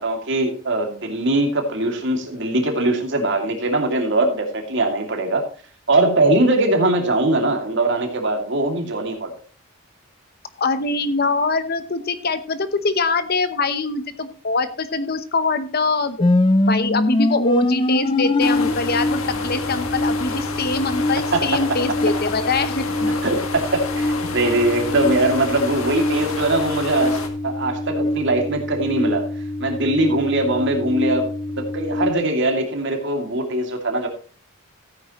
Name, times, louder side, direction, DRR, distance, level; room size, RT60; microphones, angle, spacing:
voice 1, 0.0-5.5 5.9-9.3 21.3-21.6 23.2-29.3 29.6-31.2 31.6-34.1, right 2 dB, 55° right, 3 dB, 2.6 m, -21 dB
voice 2, 10.6-16.2 16.7-22.8, left 3 dB, 45° left, 11 dB, 1.0 m, -23 dB
sound 1, 16.2-32.1, left 2 dB, 25° left, 0.4 m, -24 dB
sound 2, 18.4-27.3, left 4 dB, 80° left, 1.9 m, -31 dB
15.0 x 9.2 x 3.1 m, 0.39 s
head